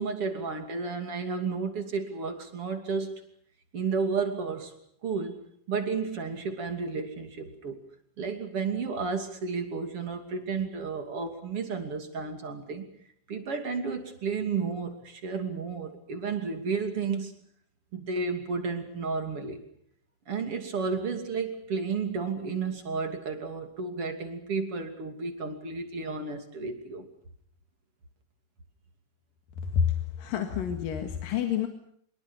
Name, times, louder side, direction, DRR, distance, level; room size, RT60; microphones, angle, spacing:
voice 1, 0.0-3.2 3.7-4.7 5.0-5.4 5.7-7.8 8.2-12.9 13.3-17.3 17.9-19.6 20.3-27.1, right 5 dB, 40° right, 6 dB, 3.5 m, -32 dB
voice 2, 29.6-31.7, left 8 dB, 75° left, 5 dB, 3.4 m, -28 dB
24.5 x 23.0 x 7.2 m, 0.66 s
omnidirectional pair, 4.0 m